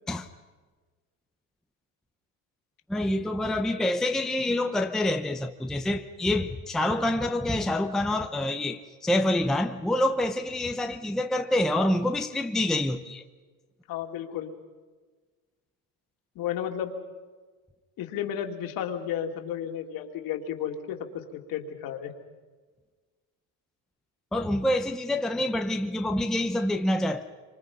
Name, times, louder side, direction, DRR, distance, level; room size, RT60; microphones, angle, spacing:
voice 1, 2.9-13.2 24.3-27.2, left 1 dB, ahead, 0.7 m, -27 dB
voice 2, 13.9-14.5 16.3-16.9 18.0-22.1, left 9 dB, 55° left, 2.7 m, -33 dB
26.5 x 25.5 x 5.5 m
cardioid pair, 145°, 42 cm